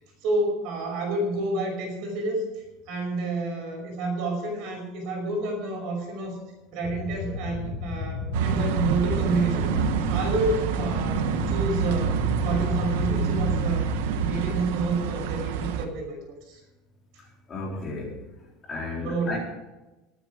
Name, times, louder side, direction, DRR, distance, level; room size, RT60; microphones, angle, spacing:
voice 1, 0.2-2.4 2.9-6.4 6.7-9.7 10.1-13.9 14.2-16.6 19.0-19.4, right 2 dB, 50° right, 2 dB, 5.5 m, -29 dB
sound 1, 6.8-14.1, left 4 dB, 45° left, 2.6 m, -34 dB
sound 2, 8.3-15.8, right 7 dB, 85° right, 1.2 m, -27 dB
voice 2, 17.5-18.2 18.7-19.4, left 2 dB, 20° left, -3 dB, 4.0 m, -33 dB
20.5 x 9.0 x 5.2 m, 1.1 s
cardioid pair, 170°, 0 cm